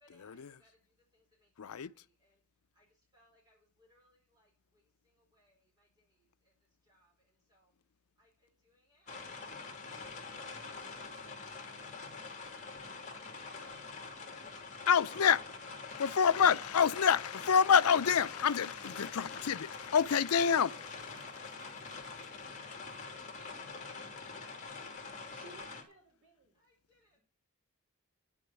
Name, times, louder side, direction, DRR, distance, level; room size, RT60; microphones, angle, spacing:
voice 1, 0.0-2.4 2.7-7.7 26.5-27.2, equal, 20° right, 4.6 m, -71 dB
voice 2, 1.6-1.9 14.9-15.4 15.9-20.9, left 7 dB, 90° left, 0.5 m, -27 dB
sound 1, 9.1-25.8, left 4 dB, 35° left, 2.7 m, -45 dB
voice 3, 25.3-26.6 27.1-27.2, right 2 dB, 65° right, 4.5 m, -58 dB
10.5 x 7.1 x 7.1 m
head